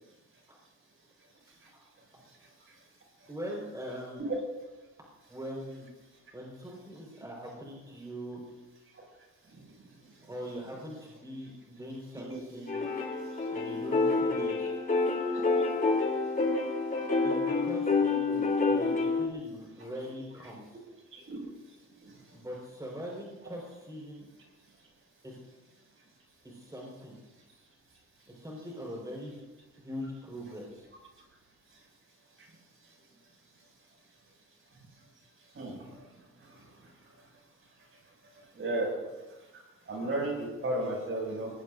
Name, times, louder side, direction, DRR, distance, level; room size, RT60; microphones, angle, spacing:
voice 1, 3.3-4.3 5.3-5.9 6.3-8.4 10.2-12.9 13.5-14.7 17.2-20.8 22.3-24.3 25.2-25.4 26.4-27.2 28.3-29.4 29.7-30.9, equal, 10° right, -2 dB, 5.0 m, -42 dB
sound 1, 12.7-19.3, left 3 dB, 30° left, 3.8 m, -28 dB
voice 2, 38.6-38.9 39.9-41.5, right 1 dB, 45° right, 0 dB, 7.0 m, -33 dB
21.5 x 20.0 x 2.7 m, 1.1 s
cardioid pair, 90°, 30 cm